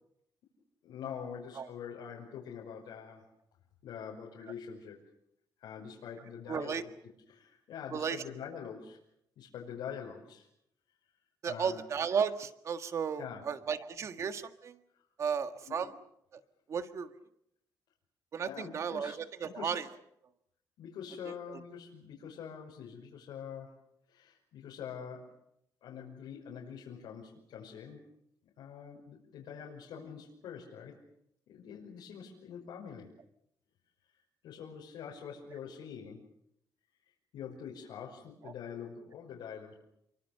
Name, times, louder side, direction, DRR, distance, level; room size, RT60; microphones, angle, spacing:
voice 1, 0.8-3.2 3.8-5.0 5.6-6.9 7.3-9.0 9.4-10.5 11.5-11.8 13.2-13.4 14.0-14.1 15.7-15.9 18.4-19.2 19.5-19.8 20.8-23.7 24.1-25.3 25.8-28.1 28.6-31.0 31.5-33.1 34.4-36.2 37.3-39.7, left 7 dB, 85° left, -3 dB, 5.7 m, -45 dB
voice 2, 6.5-6.8 7.9-8.2 11.4-14.8 15.2-15.9 16.3-16.4 16.7-17.1 18.3-19.8 21.5-21.6, right 6 dB, 40° right, 9 dB, 1.7 m, -34 dB
28.5 x 24.5 x 6.8 m, 0.76 s
cardioid pair, 165°, 8 cm